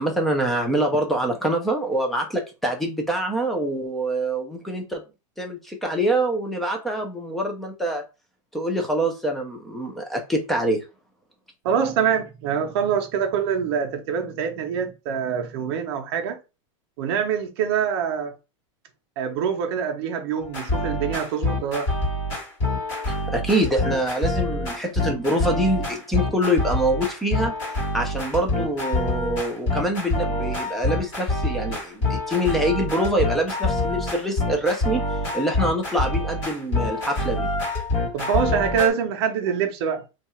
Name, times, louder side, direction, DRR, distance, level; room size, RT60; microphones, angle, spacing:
voice 1, 0.0-5.0 5.4-8.0 8.5-10.8 23.3-27.5 27.9-35.0 35.3-37.5, right 1 dB, ahead, 0.3 m, -25 dB
voice 2, 11.6-16.4 17.0-18.3 19.2-21.9 38.1-40.0, right 7 dB, 50° right, 0.6 m, -25 dB
sound 1, 20.4-38.9, left 2 dB, 35° left, 1.5 m, -26 dB
2.7 x 2.3 x 4.2 m
supercardioid pair, 175°, 17 cm